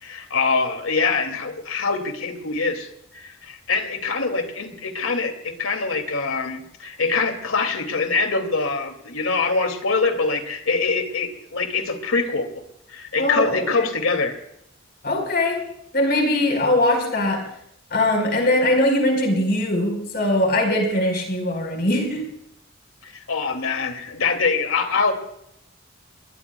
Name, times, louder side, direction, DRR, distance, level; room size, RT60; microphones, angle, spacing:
voice 1, 0.0-2.9 3.1-12.5 12.9-14.3 23.0-25.1, left 4 dB, 90° left, 5 dB, 2.4 m, -24 dB
voice 2, 13.2-13.9 15.0-15.7 15.9-17.5 17.9-22.2, left 1 dB, 50° left, 2 dB, 4.7 m, -21 dB
28.5 x 22.0 x 2.3 m, 0.76 s
head